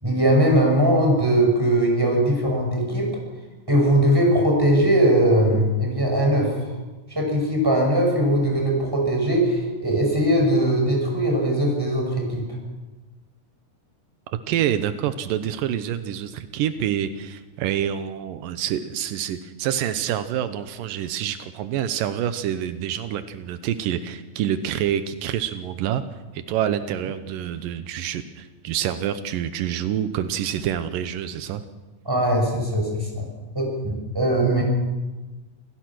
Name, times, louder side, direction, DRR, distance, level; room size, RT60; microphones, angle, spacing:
voice 1, 0.0-3.1 3.7-6.7 7.1-12.4 32.1-33.2 33.5-34.6, right 1 dB, 5° right, 0 dB, 5.8 m, -20 dB
voice 2, 14.5-26.0 26.3-31.6, right 10 dB, 85° right, 11 dB, 2.6 m, -27 dB
28.0 x 17.0 x 6.1 m, 1.2 s
omnidirectional pair, 3.8 m